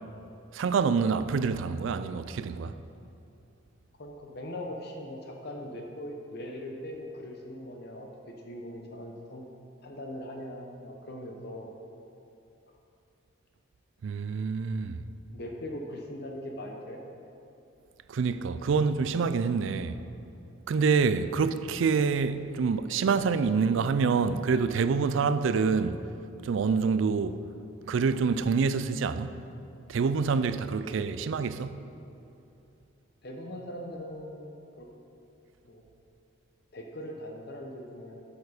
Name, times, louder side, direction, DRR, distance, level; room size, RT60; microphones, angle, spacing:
voice 1, 0.5-2.7 14.0-15.0 18.1-20.0 20.7-26.0 26.4-27.4 27.9-29.4 29.9-31.8, right 5 dB, 70° right, 0.4 m, -26 dB
voice 2, 4.0-8.1 8.5-9.5 9.8-11.7 15.3-17.0 30.8-31.3 33.2-34.9 35.7-35.8 36.7-38.2, left 1 dB, 55° left, 0.8 m, -40 dB
7.9 x 7.1 x 4.9 m
head